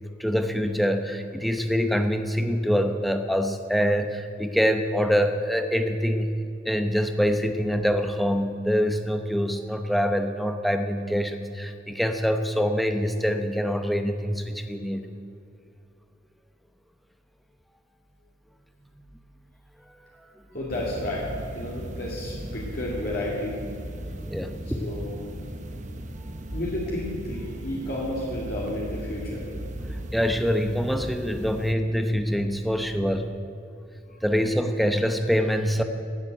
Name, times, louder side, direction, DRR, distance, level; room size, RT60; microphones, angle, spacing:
voice 1, 0.2-15.1 19.0-19.1 24.3-24.8 29.8-33.3 34.2-35.8, equal, ahead, 7 dB, 0.8 m, -25 dB
voice 2, 20.5-23.6 24.8-25.3 26.5-29.4, left 1 dB, 50° left, -5 dB, 2.5 m, -31 dB
sound 1, 20.7-31.7, right 1 dB, 40° right, 0.9 m, -37 dB
16.5 x 7.5 x 9.2 m, 2.5 s
head